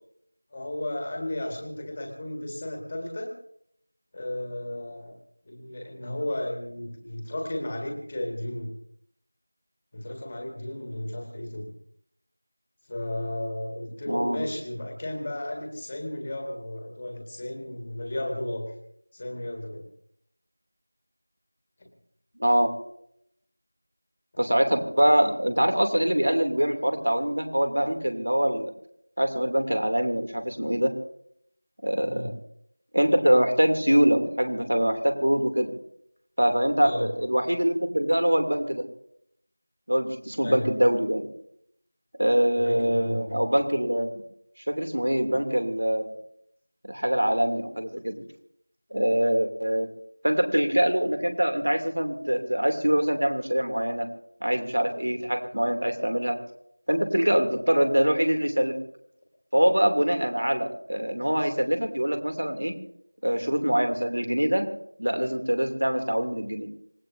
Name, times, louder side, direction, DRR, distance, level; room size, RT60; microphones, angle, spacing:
voice 1, 0.5-3.3 4.1-5.2 5.4-8.7 9.9-11.7 12.9-18.7 19.1-19.8 32.0-32.3 36.8-37.1 40.4-40.7 42.5-43.4, left 1 dB, 10° left, 2 dB, 1.5 m, -34 dB
voice 2, 14.1-14.4 22.4-22.7 24.4-28.7 29.2-30.9 31.8-32.3 32.9-35.7 36.4-38.8 39.9-41.2 42.2-44.1 44.7-46.1 46.8-48.2 48.9-49.9 50.2-54.1 54.4-56.4 56.9-58.7 59.5-62.7 63.2-64.7 65.0-66.7, equal, 70° right, 5 dB, 2.8 m, -24 dB
26.0 x 18.5 x 2.7 m, 0.72 s
figure-of-eight pair, 180°, 0 cm